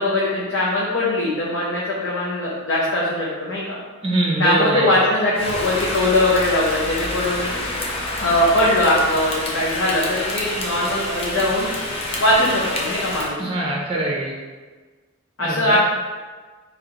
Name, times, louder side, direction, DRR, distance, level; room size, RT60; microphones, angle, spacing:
voice 1, 0.0-3.6 4.4-7.5 8.2-11.7 12.2-13.5 15.4-15.8, left 1 dB, 65° left, -6 dB, 0.7 m, -20 dB
voice 2, 4.0-5.0 13.4-14.4 15.4-15.8, right 2 dB, 25° right, -2 dB, 0.6 m, -23 dB
Rain, 5.4-13.3, left 1 dB, 30° left, 0.5 m, -28 dB
3.3 x 3.1 x 3.7 m, 1.4 s
head